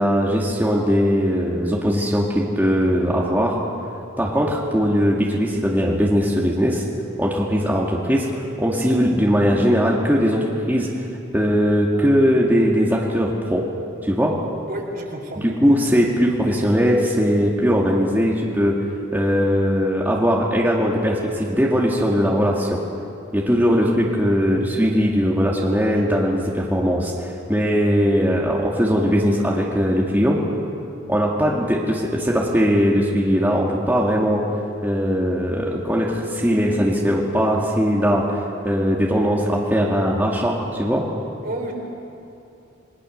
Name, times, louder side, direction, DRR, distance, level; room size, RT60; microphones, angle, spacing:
voice 1, 0.0-3.6 4.2-6.8 7.2-10.9 11.3-13.7 14.0-14.4 15.4-18.8 19.1-22.8 23.3-30.4 31.1-34.4 34.8-38.4 38.6-41.0, equal, 10° right, -3 dB, 2.2 m, -20 dB
voice 2, 14.7-15.5 41.4-41.7, right 1 dB, 50° right, 1 dB, 3.9 m, -30 dB
28.5 x 21.5 x 6.6 m, 2.8 s
head